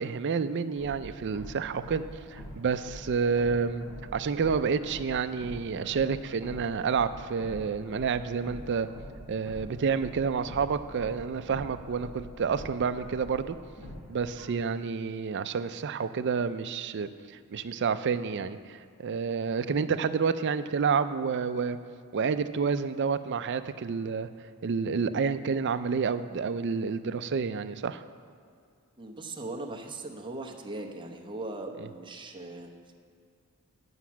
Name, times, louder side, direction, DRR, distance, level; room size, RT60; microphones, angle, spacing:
voice 1, 0.0-3.9 4.1-8.9 9.3-13.6 14.1-17.1 17.5-21.8 22.1-24.3 24.6-28.0 31.8-31.9, right 5 dB, 50° right, 11 dB, 0.4 m, -29 dB
sound 1, 0.8-14.4, equal, 90° left, 2.9 m, -45 dB
voice 2, 29.0-32.9, right 2 dB, 20° right, 1 dB, 0.8 m, -39 dB
9.5 x 5.8 x 7.3 m, 2.3 s
head